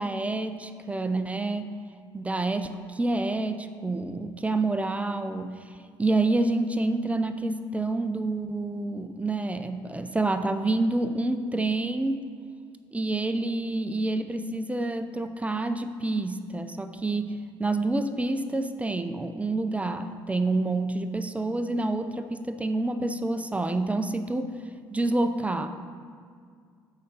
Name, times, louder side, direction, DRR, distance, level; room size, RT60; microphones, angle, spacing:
voice 1, 0.0-1.7 2.1-5.5 6.0-12.3 12.9-24.6 24.9-25.7, right 2 dB, 15° right, 9 dB, 0.5 m, -28 dB
6.4 x 5.0 x 5.4 m, 2.1 s
supercardioid pair, 70°, 10 cm